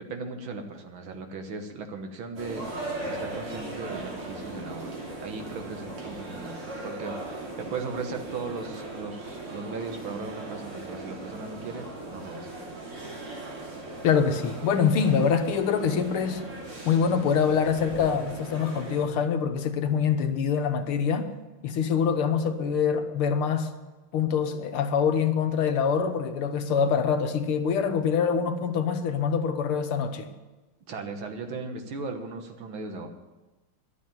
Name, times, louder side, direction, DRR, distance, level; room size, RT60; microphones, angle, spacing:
voice 1, 0.0-12.6 30.9-33.1, right 4 dB, 70° right, 6 dB, 2.1 m, -37 dB
sound 1, 2.4-19.0, right 2 dB, 85° right, 3.7 m, -38 dB
voice 2, 14.0-16.4 16.9-21.3 21.6-23.7 24.1-30.3, left 6 dB, 85° left, 7 dB, 1.9 m, -25 dB
11.5 x 8.5 x 9.0 m, 1.2 s
omnidirectional pair, 2.3 m